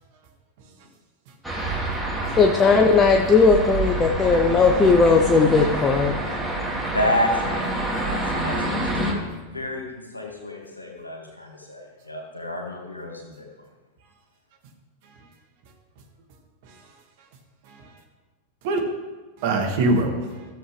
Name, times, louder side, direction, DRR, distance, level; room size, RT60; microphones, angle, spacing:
sound 1, 1.4-9.1, right 1 dB, 5° right, 2.4 m, -27 dB
voice 1, 2.4-6.1, left 4 dB, 20° left, 4 dB, 0.7 m, -17 dB
voice 2, 6.5-7.7 8.0-9.2 9.5-13.5, left 1 dB, 85° left, 1 dB, 2.0 m, -30 dB
voice 3, 19.4-20.5, right 2 dB, 50° right, 2 dB, 1.9 m, -25 dB
14.5 x 7.3 x 3.3 m, 1.3 s
figure-of-eight pair, 90°, 0 cm